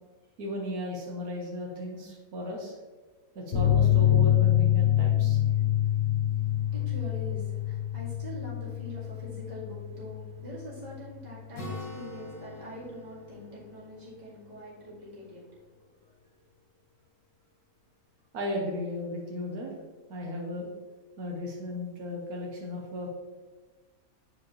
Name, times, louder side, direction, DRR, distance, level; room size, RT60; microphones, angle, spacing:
voice 1, 0.4-2.8 3.3-5.4 18.3-19.7 20.1-20.7 21.2-23.1, left 1 dB, 80° right, -1 dB, 1.5 m, -35 dB
sound 1, 3.5-10.6 10.9-11.0 11.3-11.4, left 11 dB, 50° left, 0.7 m, -26 dB
voice 2, 6.4-15.9, equal, 30° right, -8 dB, 2.3 m, -44 dB
Acoustic guitar, 11.5-15.3, left 1 dB, 85° left, 2.0 m, -44 dB
8.1 x 4.7 x 3.1 m, 1.3 s
omnidirectional pair, 1.5 m